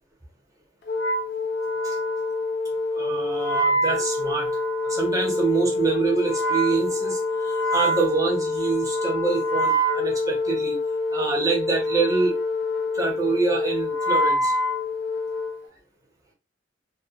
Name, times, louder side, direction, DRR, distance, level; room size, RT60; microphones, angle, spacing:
Wind instrument woodwind instrument, 0.9-15.6, left 1 dB, 55° left, 0.5 m, -25 dB
voice 1, 2.9-4.5 4.8-10.8 11.1-12.3 12.8-14.5, right 4 dB, 20° right, -1 dB, 0.7 m, -26 dB
2.2 x 2.1 x 2.7 m, 0.30 s
head